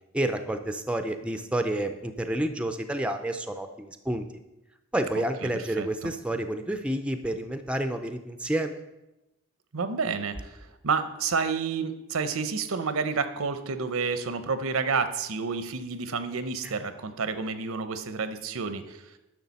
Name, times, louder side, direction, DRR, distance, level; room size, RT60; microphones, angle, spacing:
voice 1, 0.1-4.2 4.9-8.8 16.6-16.7, right 1 dB, 5° right, 8 dB, 0.4 m, -29 dB
voice 2, 5.2-5.5 5.8-6.1 9.7-19.0, right 5 dB, 80° right, 10 dB, 0.7 m, -30 dB
10.5 x 6.2 x 4.1 m, 0.95 s
head